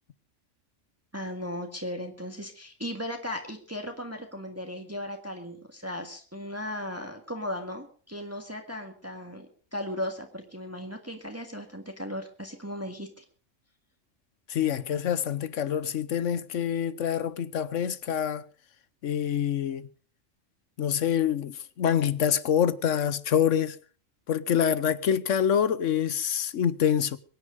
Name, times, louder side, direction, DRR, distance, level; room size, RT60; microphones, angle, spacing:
voice 1, 1.1-13.2, left 1 dB, 10° right, 1.8 m, -36 dB
voice 2, 14.5-18.4 19.0-19.9 20.8-23.8 24.3-27.2, left 9 dB, 75° left, 1.2 m, -26 dB
23.0 x 9.8 x 5.2 m
omnidirectional pair, 1.3 m